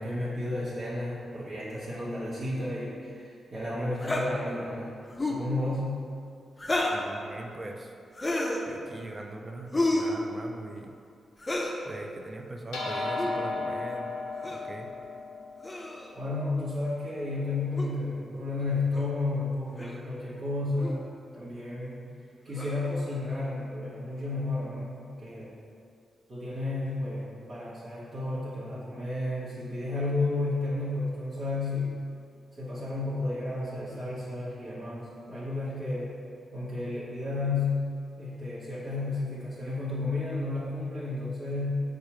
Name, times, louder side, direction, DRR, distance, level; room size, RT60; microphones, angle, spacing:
voice 1, 0.0-4.9 5.3-5.9 16.1-22.0 22.4-25.5 26.3-31.9 32.6-36.1 36.5-37.8 38.2-41.7, left 2 dB, 60° right, -10 dB, 1.0 m, -32 dB
sound 1, 4.0-4.3 5.1-5.5 6.6-7.1 8.1-8.6 9.7-10.1 11.4-11.8 13.1-13.4 14.4-14.7 15.6-16.1 17.8-17.9 18.9-19.1 19.8-20.0 20.8-21.0 22.5-22.9, left 1 dB, 25° left, 0.5 m, -30 dB
voice 2, 6.8-7.9 8.7-10.9 11.9-14.1 14.5-14.9, right 2 dB, 35° right, 3 dB, 0.4 m, -41 dB
sound 2, 12.7-17.4, left 3 dB, 90° left, 0.4 m, -35 dB
4.6 x 2.4 x 3.0 m, 2.4 s
supercardioid pair, 45°, 0 cm